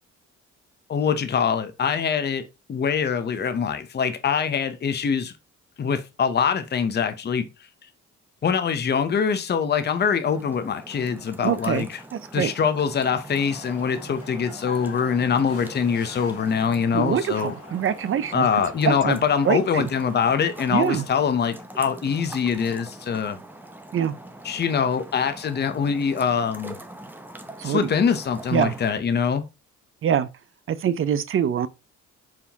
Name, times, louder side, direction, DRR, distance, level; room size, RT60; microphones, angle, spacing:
voice 1, 0.9-5.3 5.8-7.5 8.4-12.0 12.3-17.5 18.3-23.4 24.4-26.8 27.6-29.4, left 6 dB, 35° left, 0.7 m, -24 dB
sound 1, 10.3-28.9, right 1 dB, 5° right, 0.6 m, -43 dB
voice 2, 11.4-11.9 12.1-12.5 16.9-18.5 18.8-19.2 19.5-19.9 20.7-21.0 23.9-24.1 27.6-27.9 28.5-28.7 30.0-30.3 30.7-31.7, right 9 dB, 45° right, 0.5 m, -24 dB
sound 2, 13.3-21.1, left 4 dB, 50° left, 1.6 m, -45 dB
4.7 x 3.6 x 2.7 m
cardioid pair, 90°, 30 cm